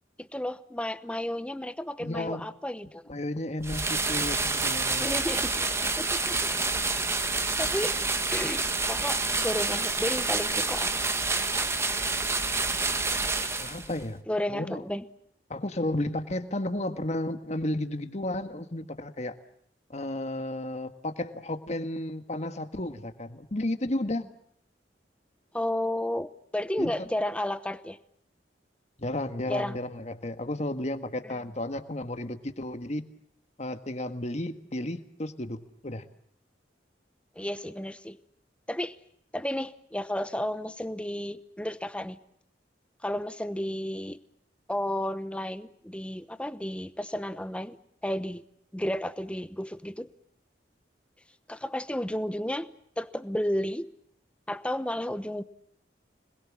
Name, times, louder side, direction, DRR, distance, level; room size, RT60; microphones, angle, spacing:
voice 1, 0.2-3.0 5.0-5.7 6.0-6.4 7.6-8.0 8.3-8.6 8.9-10.9 14.3-15.0 25.5-28.0 29.5-29.8 31.2-31.4 37.4-38.2 38.7-38.9 39.3-42.2 43.0-44.2 44.7-47.8 48.0-48.4 48.7-50.1 51.5-52.7 53.0-53.9 54.5-55.4, left 1 dB, 5° left, 13 dB, 0.9 m, -32 dB
voice 2, 2.0-2.5 3.1-5.2 13.6-14.2 14.5-14.8 15.5-19.4 19.9-24.2 26.8-26.9 29.0-33.1 33.6-36.1, left 1 dB, 40° left, 9 dB, 1.7 m, -33 dB
sound 1, 3.6-14.0, right 3 dB, 15° right, 1.2 m, -28 dB
26.5 x 21.0 x 7.4 m, 0.69 s
head